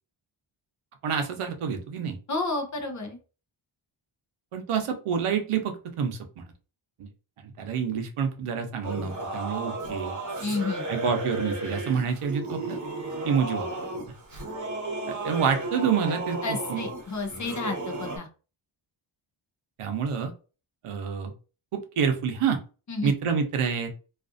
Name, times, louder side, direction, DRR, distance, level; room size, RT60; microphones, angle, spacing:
voice 1, 1.0-2.2 4.5-6.4 7.0-7.1 7.6-10.2 10.9-12.8 13.2-13.7 15.1-16.8 19.8-20.3 20.8-21.3 21.7-22.6 23.0-23.9, right 6 dB, 80° right, 5 dB, 0.8 m, -28 dB
voice 2, 2.3-3.2 10.4-10.9 16.4-18.3 22.9-23.1, left 3 dB, 35° left, 4 dB, 0.6 m, -31 dB
Singing / Musical instrument, 8.8-18.2, right 2 dB, 35° right, 0.9 m, -34 dB
2.5 x 2.4 x 2.5 m, 0.33 s
wide cardioid pair, 155°, 50 cm